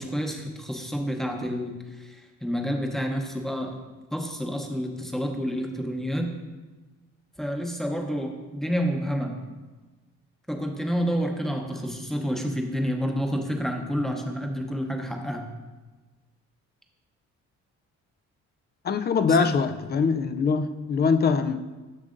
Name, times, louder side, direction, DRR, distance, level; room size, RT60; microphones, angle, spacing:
voice 1, 0.0-3.8 4.1-6.3 7.4-9.3 10.5-15.4 19.3-19.5, equal, ahead, 2 dB, 0.8 m, -29 dB
voice 2, 18.8-21.6, left 5 dB, 35° left, 10 dB, 0.4 m, -23 dB
7.2 x 6.3 x 2.6 m, 1.2 s
cardioid pair, 90°, 30 cm